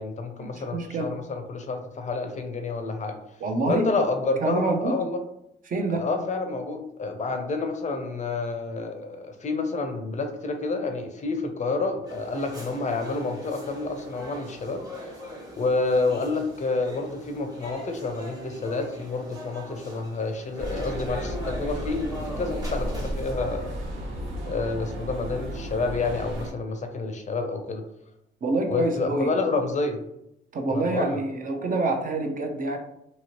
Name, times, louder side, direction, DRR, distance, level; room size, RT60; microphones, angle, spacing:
voice 1, 0.0-3.2 3.7-5.2 5.9-14.9 15.6-23.8 24.4-27.8 28.7-30.0 30.7-31.2, left 3 dB, 35° left, 5 dB, 0.5 m, -29 dB
voice 2, 0.5-1.1 3.4-3.9 4.4-4.9 5.7-6.1 28.4-29.3 30.5-32.8, right 2 dB, 45° right, 4 dB, 0.6 m, -26 dB
sound 1, 12.1-23.6, equal, 20° right, 1.0 m, -41 dB
sound 2, 20.6-26.5, equal, 75° right, 1.1 m, -33 dB
2.8 x 2.8 x 2.9 m, 0.81 s
cardioid pair, 90°, 20 cm